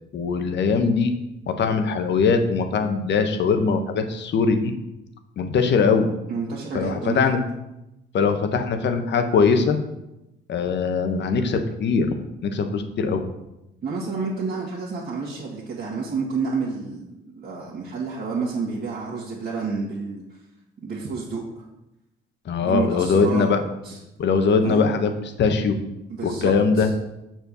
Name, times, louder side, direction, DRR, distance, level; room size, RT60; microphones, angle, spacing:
voice 1, 0.1-1.1 1.5-4.7 5.4-6.1 6.7-7.4 8.1-9.8 10.5-12.1 12.4-13.2 22.5-23.6 24.2-25.8 26.2-26.9, left 5 dB, 65° left, 7 dB, 1.1 m, -21 dB
voice 2, 6.3-7.4 13.8-20.2 20.8-21.6 22.6-23.5 23.8-24.0 24.6-24.9 26.1-26.9, right 4 dB, 55° right, -6 dB, 1.9 m, -29 dB
6.9 x 4.5 x 6.8 m, 0.92 s
cardioid pair, 90°, 20 cm